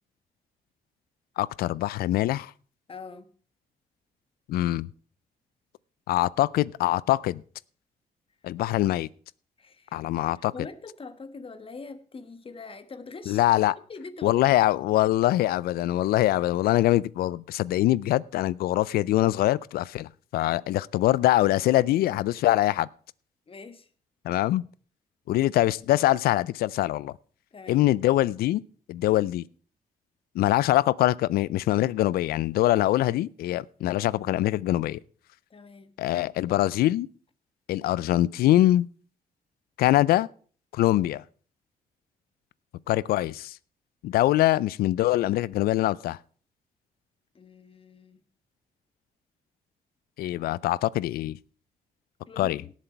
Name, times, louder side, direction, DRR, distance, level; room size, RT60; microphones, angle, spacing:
voice 1, 1.4-2.5 4.5-4.9 6.1-7.4 8.4-9.1 9.9-10.5 13.3-13.7 14.2-22.9 24.2-24.6 25.3-27.1 27.7-28.6 28.9-29.4 30.3-35.0 36.0-37.1 37.7-38.9 39.8-40.3 40.7-41.2 42.9-43.6 44.0-46.2 50.2-51.4 52.4-52.6, left 15 dB, 85° left, 0.4 m, -23 dB
voice 2, 2.9-3.3 9.6-13.4 13.9-14.6 23.5-23.9 27.5-27.8 35.5-35.9 47.3-48.2 52.3-52.7, left 4 dB, 35° left, 1.4 m, -44 dB
17.5 x 7.5 x 4.5 m
cardioid pair, 80°, 15 cm